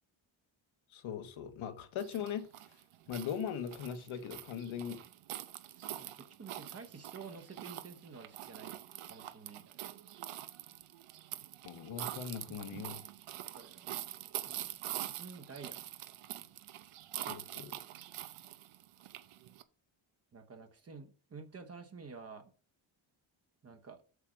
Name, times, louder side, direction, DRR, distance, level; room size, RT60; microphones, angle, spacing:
voice 1, 0.9-2.5 3.1-5.0 11.6-13.0 17.3-17.8, left 8 dB, 70° left, 1.3 m, -40 dB
sound 1, 2.0-19.6, right 13 dB, 85° right, 0.9 m, -45 dB
voice 2, 6.0-8.8 9.0-9.9 12.6-12.7 13.5-14.0 14.4-15.8 20.3-22.5 23.6-24.0, right 5 dB, 30° right, 1.0 m, -50 dB
8.2 x 7.6 x 5.1 m
wide cardioid pair, 175°, 49 cm